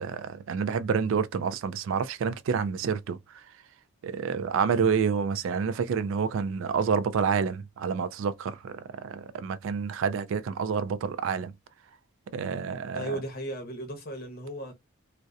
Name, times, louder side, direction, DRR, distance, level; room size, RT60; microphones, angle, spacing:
voice 1, 0.0-3.2 4.0-11.5 12.3-13.2, right 6 dB, 65° right, 0.3 m, -28 dB
voice 2, 12.9-14.7, right 1 dB, 45° left, 0.8 m, -35 dB
2.7 x 2.0 x 2.3 m
head